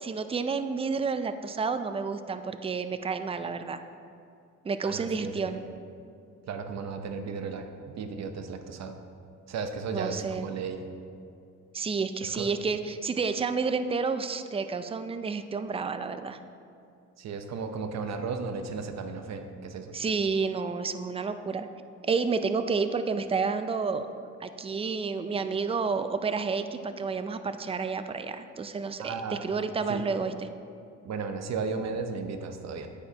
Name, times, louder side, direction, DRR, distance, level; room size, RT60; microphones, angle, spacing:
voice 1, 0.0-3.8 4.6-5.6 9.9-10.5 11.7-16.4 19.9-21.7 22.0-24.1 24.4-30.5, right 5 dB, 20° right, 10 dB, 0.4 m, -30 dB
voice 2, 4.8-5.6 6.5-7.7 7.9-9.0 9.5-10.8 12.2-12.5 17.2-19.9 29.0-29.5 29.9-30.1 31.0-32.9, right 5 dB, 60° right, 7 dB, 0.8 m, -35 dB
9.6 x 8.8 x 2.9 m, 2.4 s
cardioid pair, 90°, 30 cm